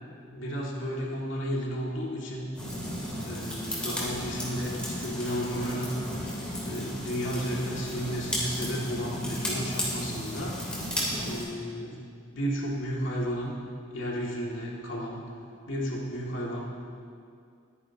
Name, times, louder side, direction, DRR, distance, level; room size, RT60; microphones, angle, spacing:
voice 1, 0.1-2.5 3.2-6.2 6.6-10.6 11.2-12.1 12.3-13.5 13.9-15.2 15.7-16.6, equal, 70° left, -4 dB, 2.5 m, -33 dB
sound 1, 2.5-11.4, equal, 5° left, 3.0 m, -34 dB
22.0 x 9.7 x 3.0 m, 2.3 s
head